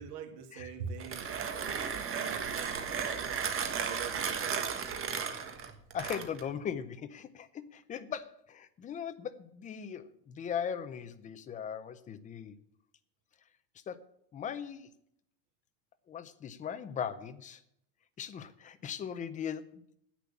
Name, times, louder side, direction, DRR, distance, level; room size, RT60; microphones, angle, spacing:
voice 1, 0.0-3.4 3.7-5.3, right 7 dB, 90° right, 4 dB, 2.4 m, -45 dB
Mechanisms, 0.9-6.5, right 7 dB, 25° right, 1.4 m, -35 dB
voice 2, 5.9-12.6 13.9-14.0 14.3-14.9 16.1-17.6 18.2-19.8, left 8 dB, 15° left, 11 dB, 0.5 m, -39 dB
10.0 x 8.7 x 8.3 m, 0.74 s
cardioid pair, 165°, 48 cm